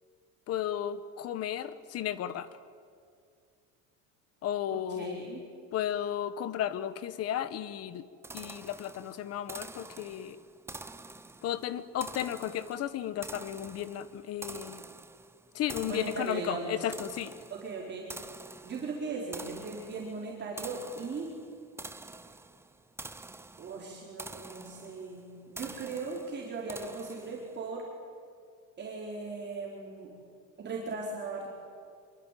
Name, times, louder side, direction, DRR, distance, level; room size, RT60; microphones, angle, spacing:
voice 1, 0.5-2.5 4.4-5.3 5.7-8.1 8.3-10.4 11.4-14.8 15.5-17.3, left 10 dB, 40° left, 14 dB, 1.3 m, -34 dB
voice 2, 4.7-5.4 15.9-16.8 17.5-18.1 18.6-21.3 23.6-27.8 28.8-30.1 30.6-31.5, right 4 dB, 30° right, -3 dB, 4.3 m, -38 dB
sound 1, 8.2-27.6, right 3 dB, 5° right, 0.8 m, -47 dB
26.0 x 23.5 x 9.2 m, 2.2 s
cardioid pair, 165°, 37 cm